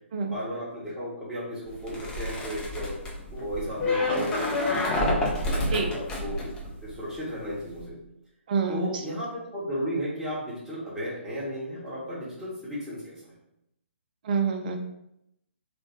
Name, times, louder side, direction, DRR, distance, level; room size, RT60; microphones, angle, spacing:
voice 1, 0.3-3.0 3.3-4.9 5.3-6.5 6.8-8.0 8.7-13.3, equal, 5° right, -10 dB, 1.3 m, -34 dB
sound 1, 1.7-7.2 7.5-7.9, left 1 dB, 10° left, 0.6 m, -29 dB
voice 2, 8.5-9.0 14.2-14.8, right 5 dB, 40° right, 4 dB, 0.5 m, -27 dB
3.3 x 3.1 x 3.0 m, 0.81 s
figure-of-eight pair, 130°, 7 cm